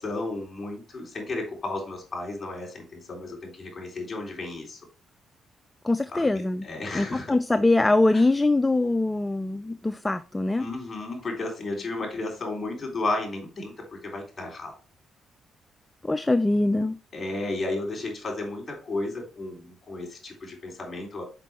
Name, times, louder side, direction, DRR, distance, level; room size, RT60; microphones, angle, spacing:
voice 1, 0.0-4.8 6.1-7.3 8.1-8.2 10.6-14.7 17.1-21.2, left 2 dB, 35° left, 3.6 m, -33 dB
voice 2, 5.8-6.7 6.9-10.7 16.0-17.0, left 2 dB, 15° left, 0.3 m, -23 dB
5.8 x 5.5 x 3.6 m
cardioid pair, 90°, 0 cm